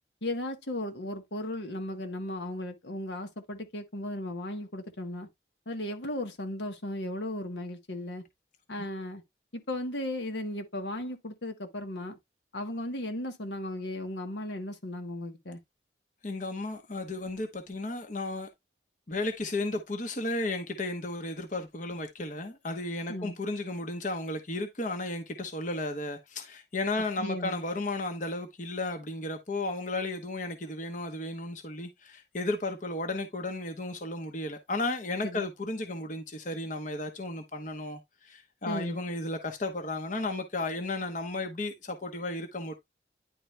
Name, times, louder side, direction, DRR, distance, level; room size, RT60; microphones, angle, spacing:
voice 1, 0.2-5.3 5.7-8.2 8.7-9.2 9.5-12.2 12.5-15.6 23.1-23.3 27.2-27.6 35.2-35.5 38.7-39.0, left 1 dB, 80° left, 1.5 m, -36 dB
voice 2, 16.2-18.5 19.1-42.7, left 2 dB, 45° left, 1.0 m, -34 dB
10.0 x 3.8 x 3.3 m
head